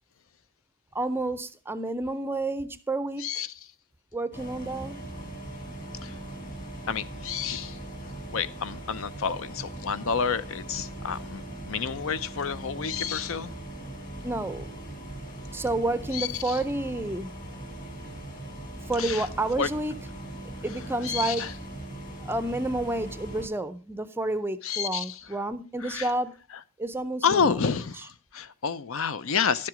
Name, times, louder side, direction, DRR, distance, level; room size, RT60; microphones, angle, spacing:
voice 1, 0.9-3.4 4.1-5.0 14.2-14.7 15.5-17.3 18.8-20.0 20.6-21.5 22.2-26.3 26.8-27.6, right 2 dB, 10° right, 0.5 m, -30 dB
sound 1, 4.3-23.5, right 1 dB, 40° left, 2.6 m, -40 dB
voice 2, 6.9-7.8 8.3-13.5 16.1-16.6 19.0-19.2 19.6-19.7 21.0-21.5 24.6-25.2 25.8-26.1 27.2-29.7, left 6 dB, 65° left, 0.6 m, -29 dB
12.0 x 7.6 x 5.0 m
head